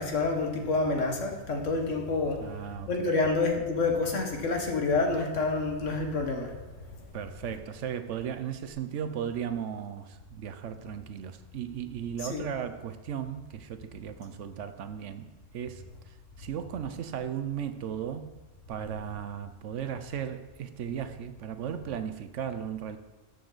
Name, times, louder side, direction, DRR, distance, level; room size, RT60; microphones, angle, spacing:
voice 1, 0.0-2.4 2.9-6.5 12.3-12.5, left 3 dB, 75° left, 3 dB, 1.7 m, -28 dB
voice 2, 2.4-3.3 7.1-18.4 18.7-23.0, right 8 dB, 70° right, 10 dB, 1.0 m, -36 dB
13.0 x 6.8 x 4.0 m, 1.2 s
omnidirectional pair, 1.3 m